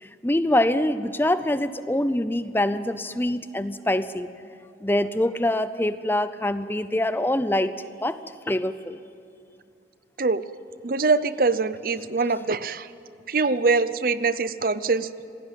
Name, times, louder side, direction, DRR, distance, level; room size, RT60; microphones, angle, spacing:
voice 1, 0.0-4.3 4.8-7.7 8.0-8.2 8.5-9.0, left 1 dB, 10° left, 13 dB, 0.6 m, -24 dB
voice 2, 10.8-12.9 13.3-15.1, right 4 dB, 50° right, 15 dB, 0.7 m, -23 dB
26.5 x 18.0 x 9.2 m, 2.5 s
head